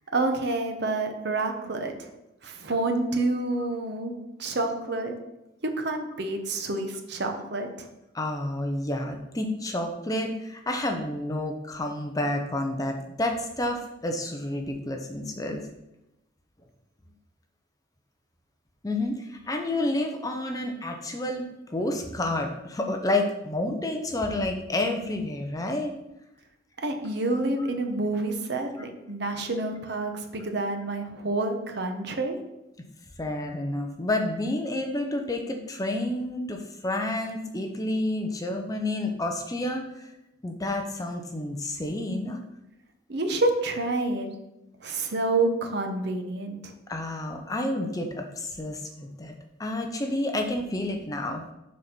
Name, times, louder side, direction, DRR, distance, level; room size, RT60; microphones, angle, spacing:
voice 1, 0.1-2.1 2.4-4.1 4.4-5.1 5.8-7.9 26.8-32.4 43.1-44.3 44.8-46.7, right 2 dB, 55° right, 4 dB, 0.9 m, -28 dB
voice 2, 8.1-15.6 18.8-25.9 33.2-40.1 40.4-42.4 46.9-49.3 49.6-51.4, left 1 dB, 15° left, 3 dB, 0.6 m, -30 dB
6.2 x 4.1 x 5.9 m, 0.91 s
head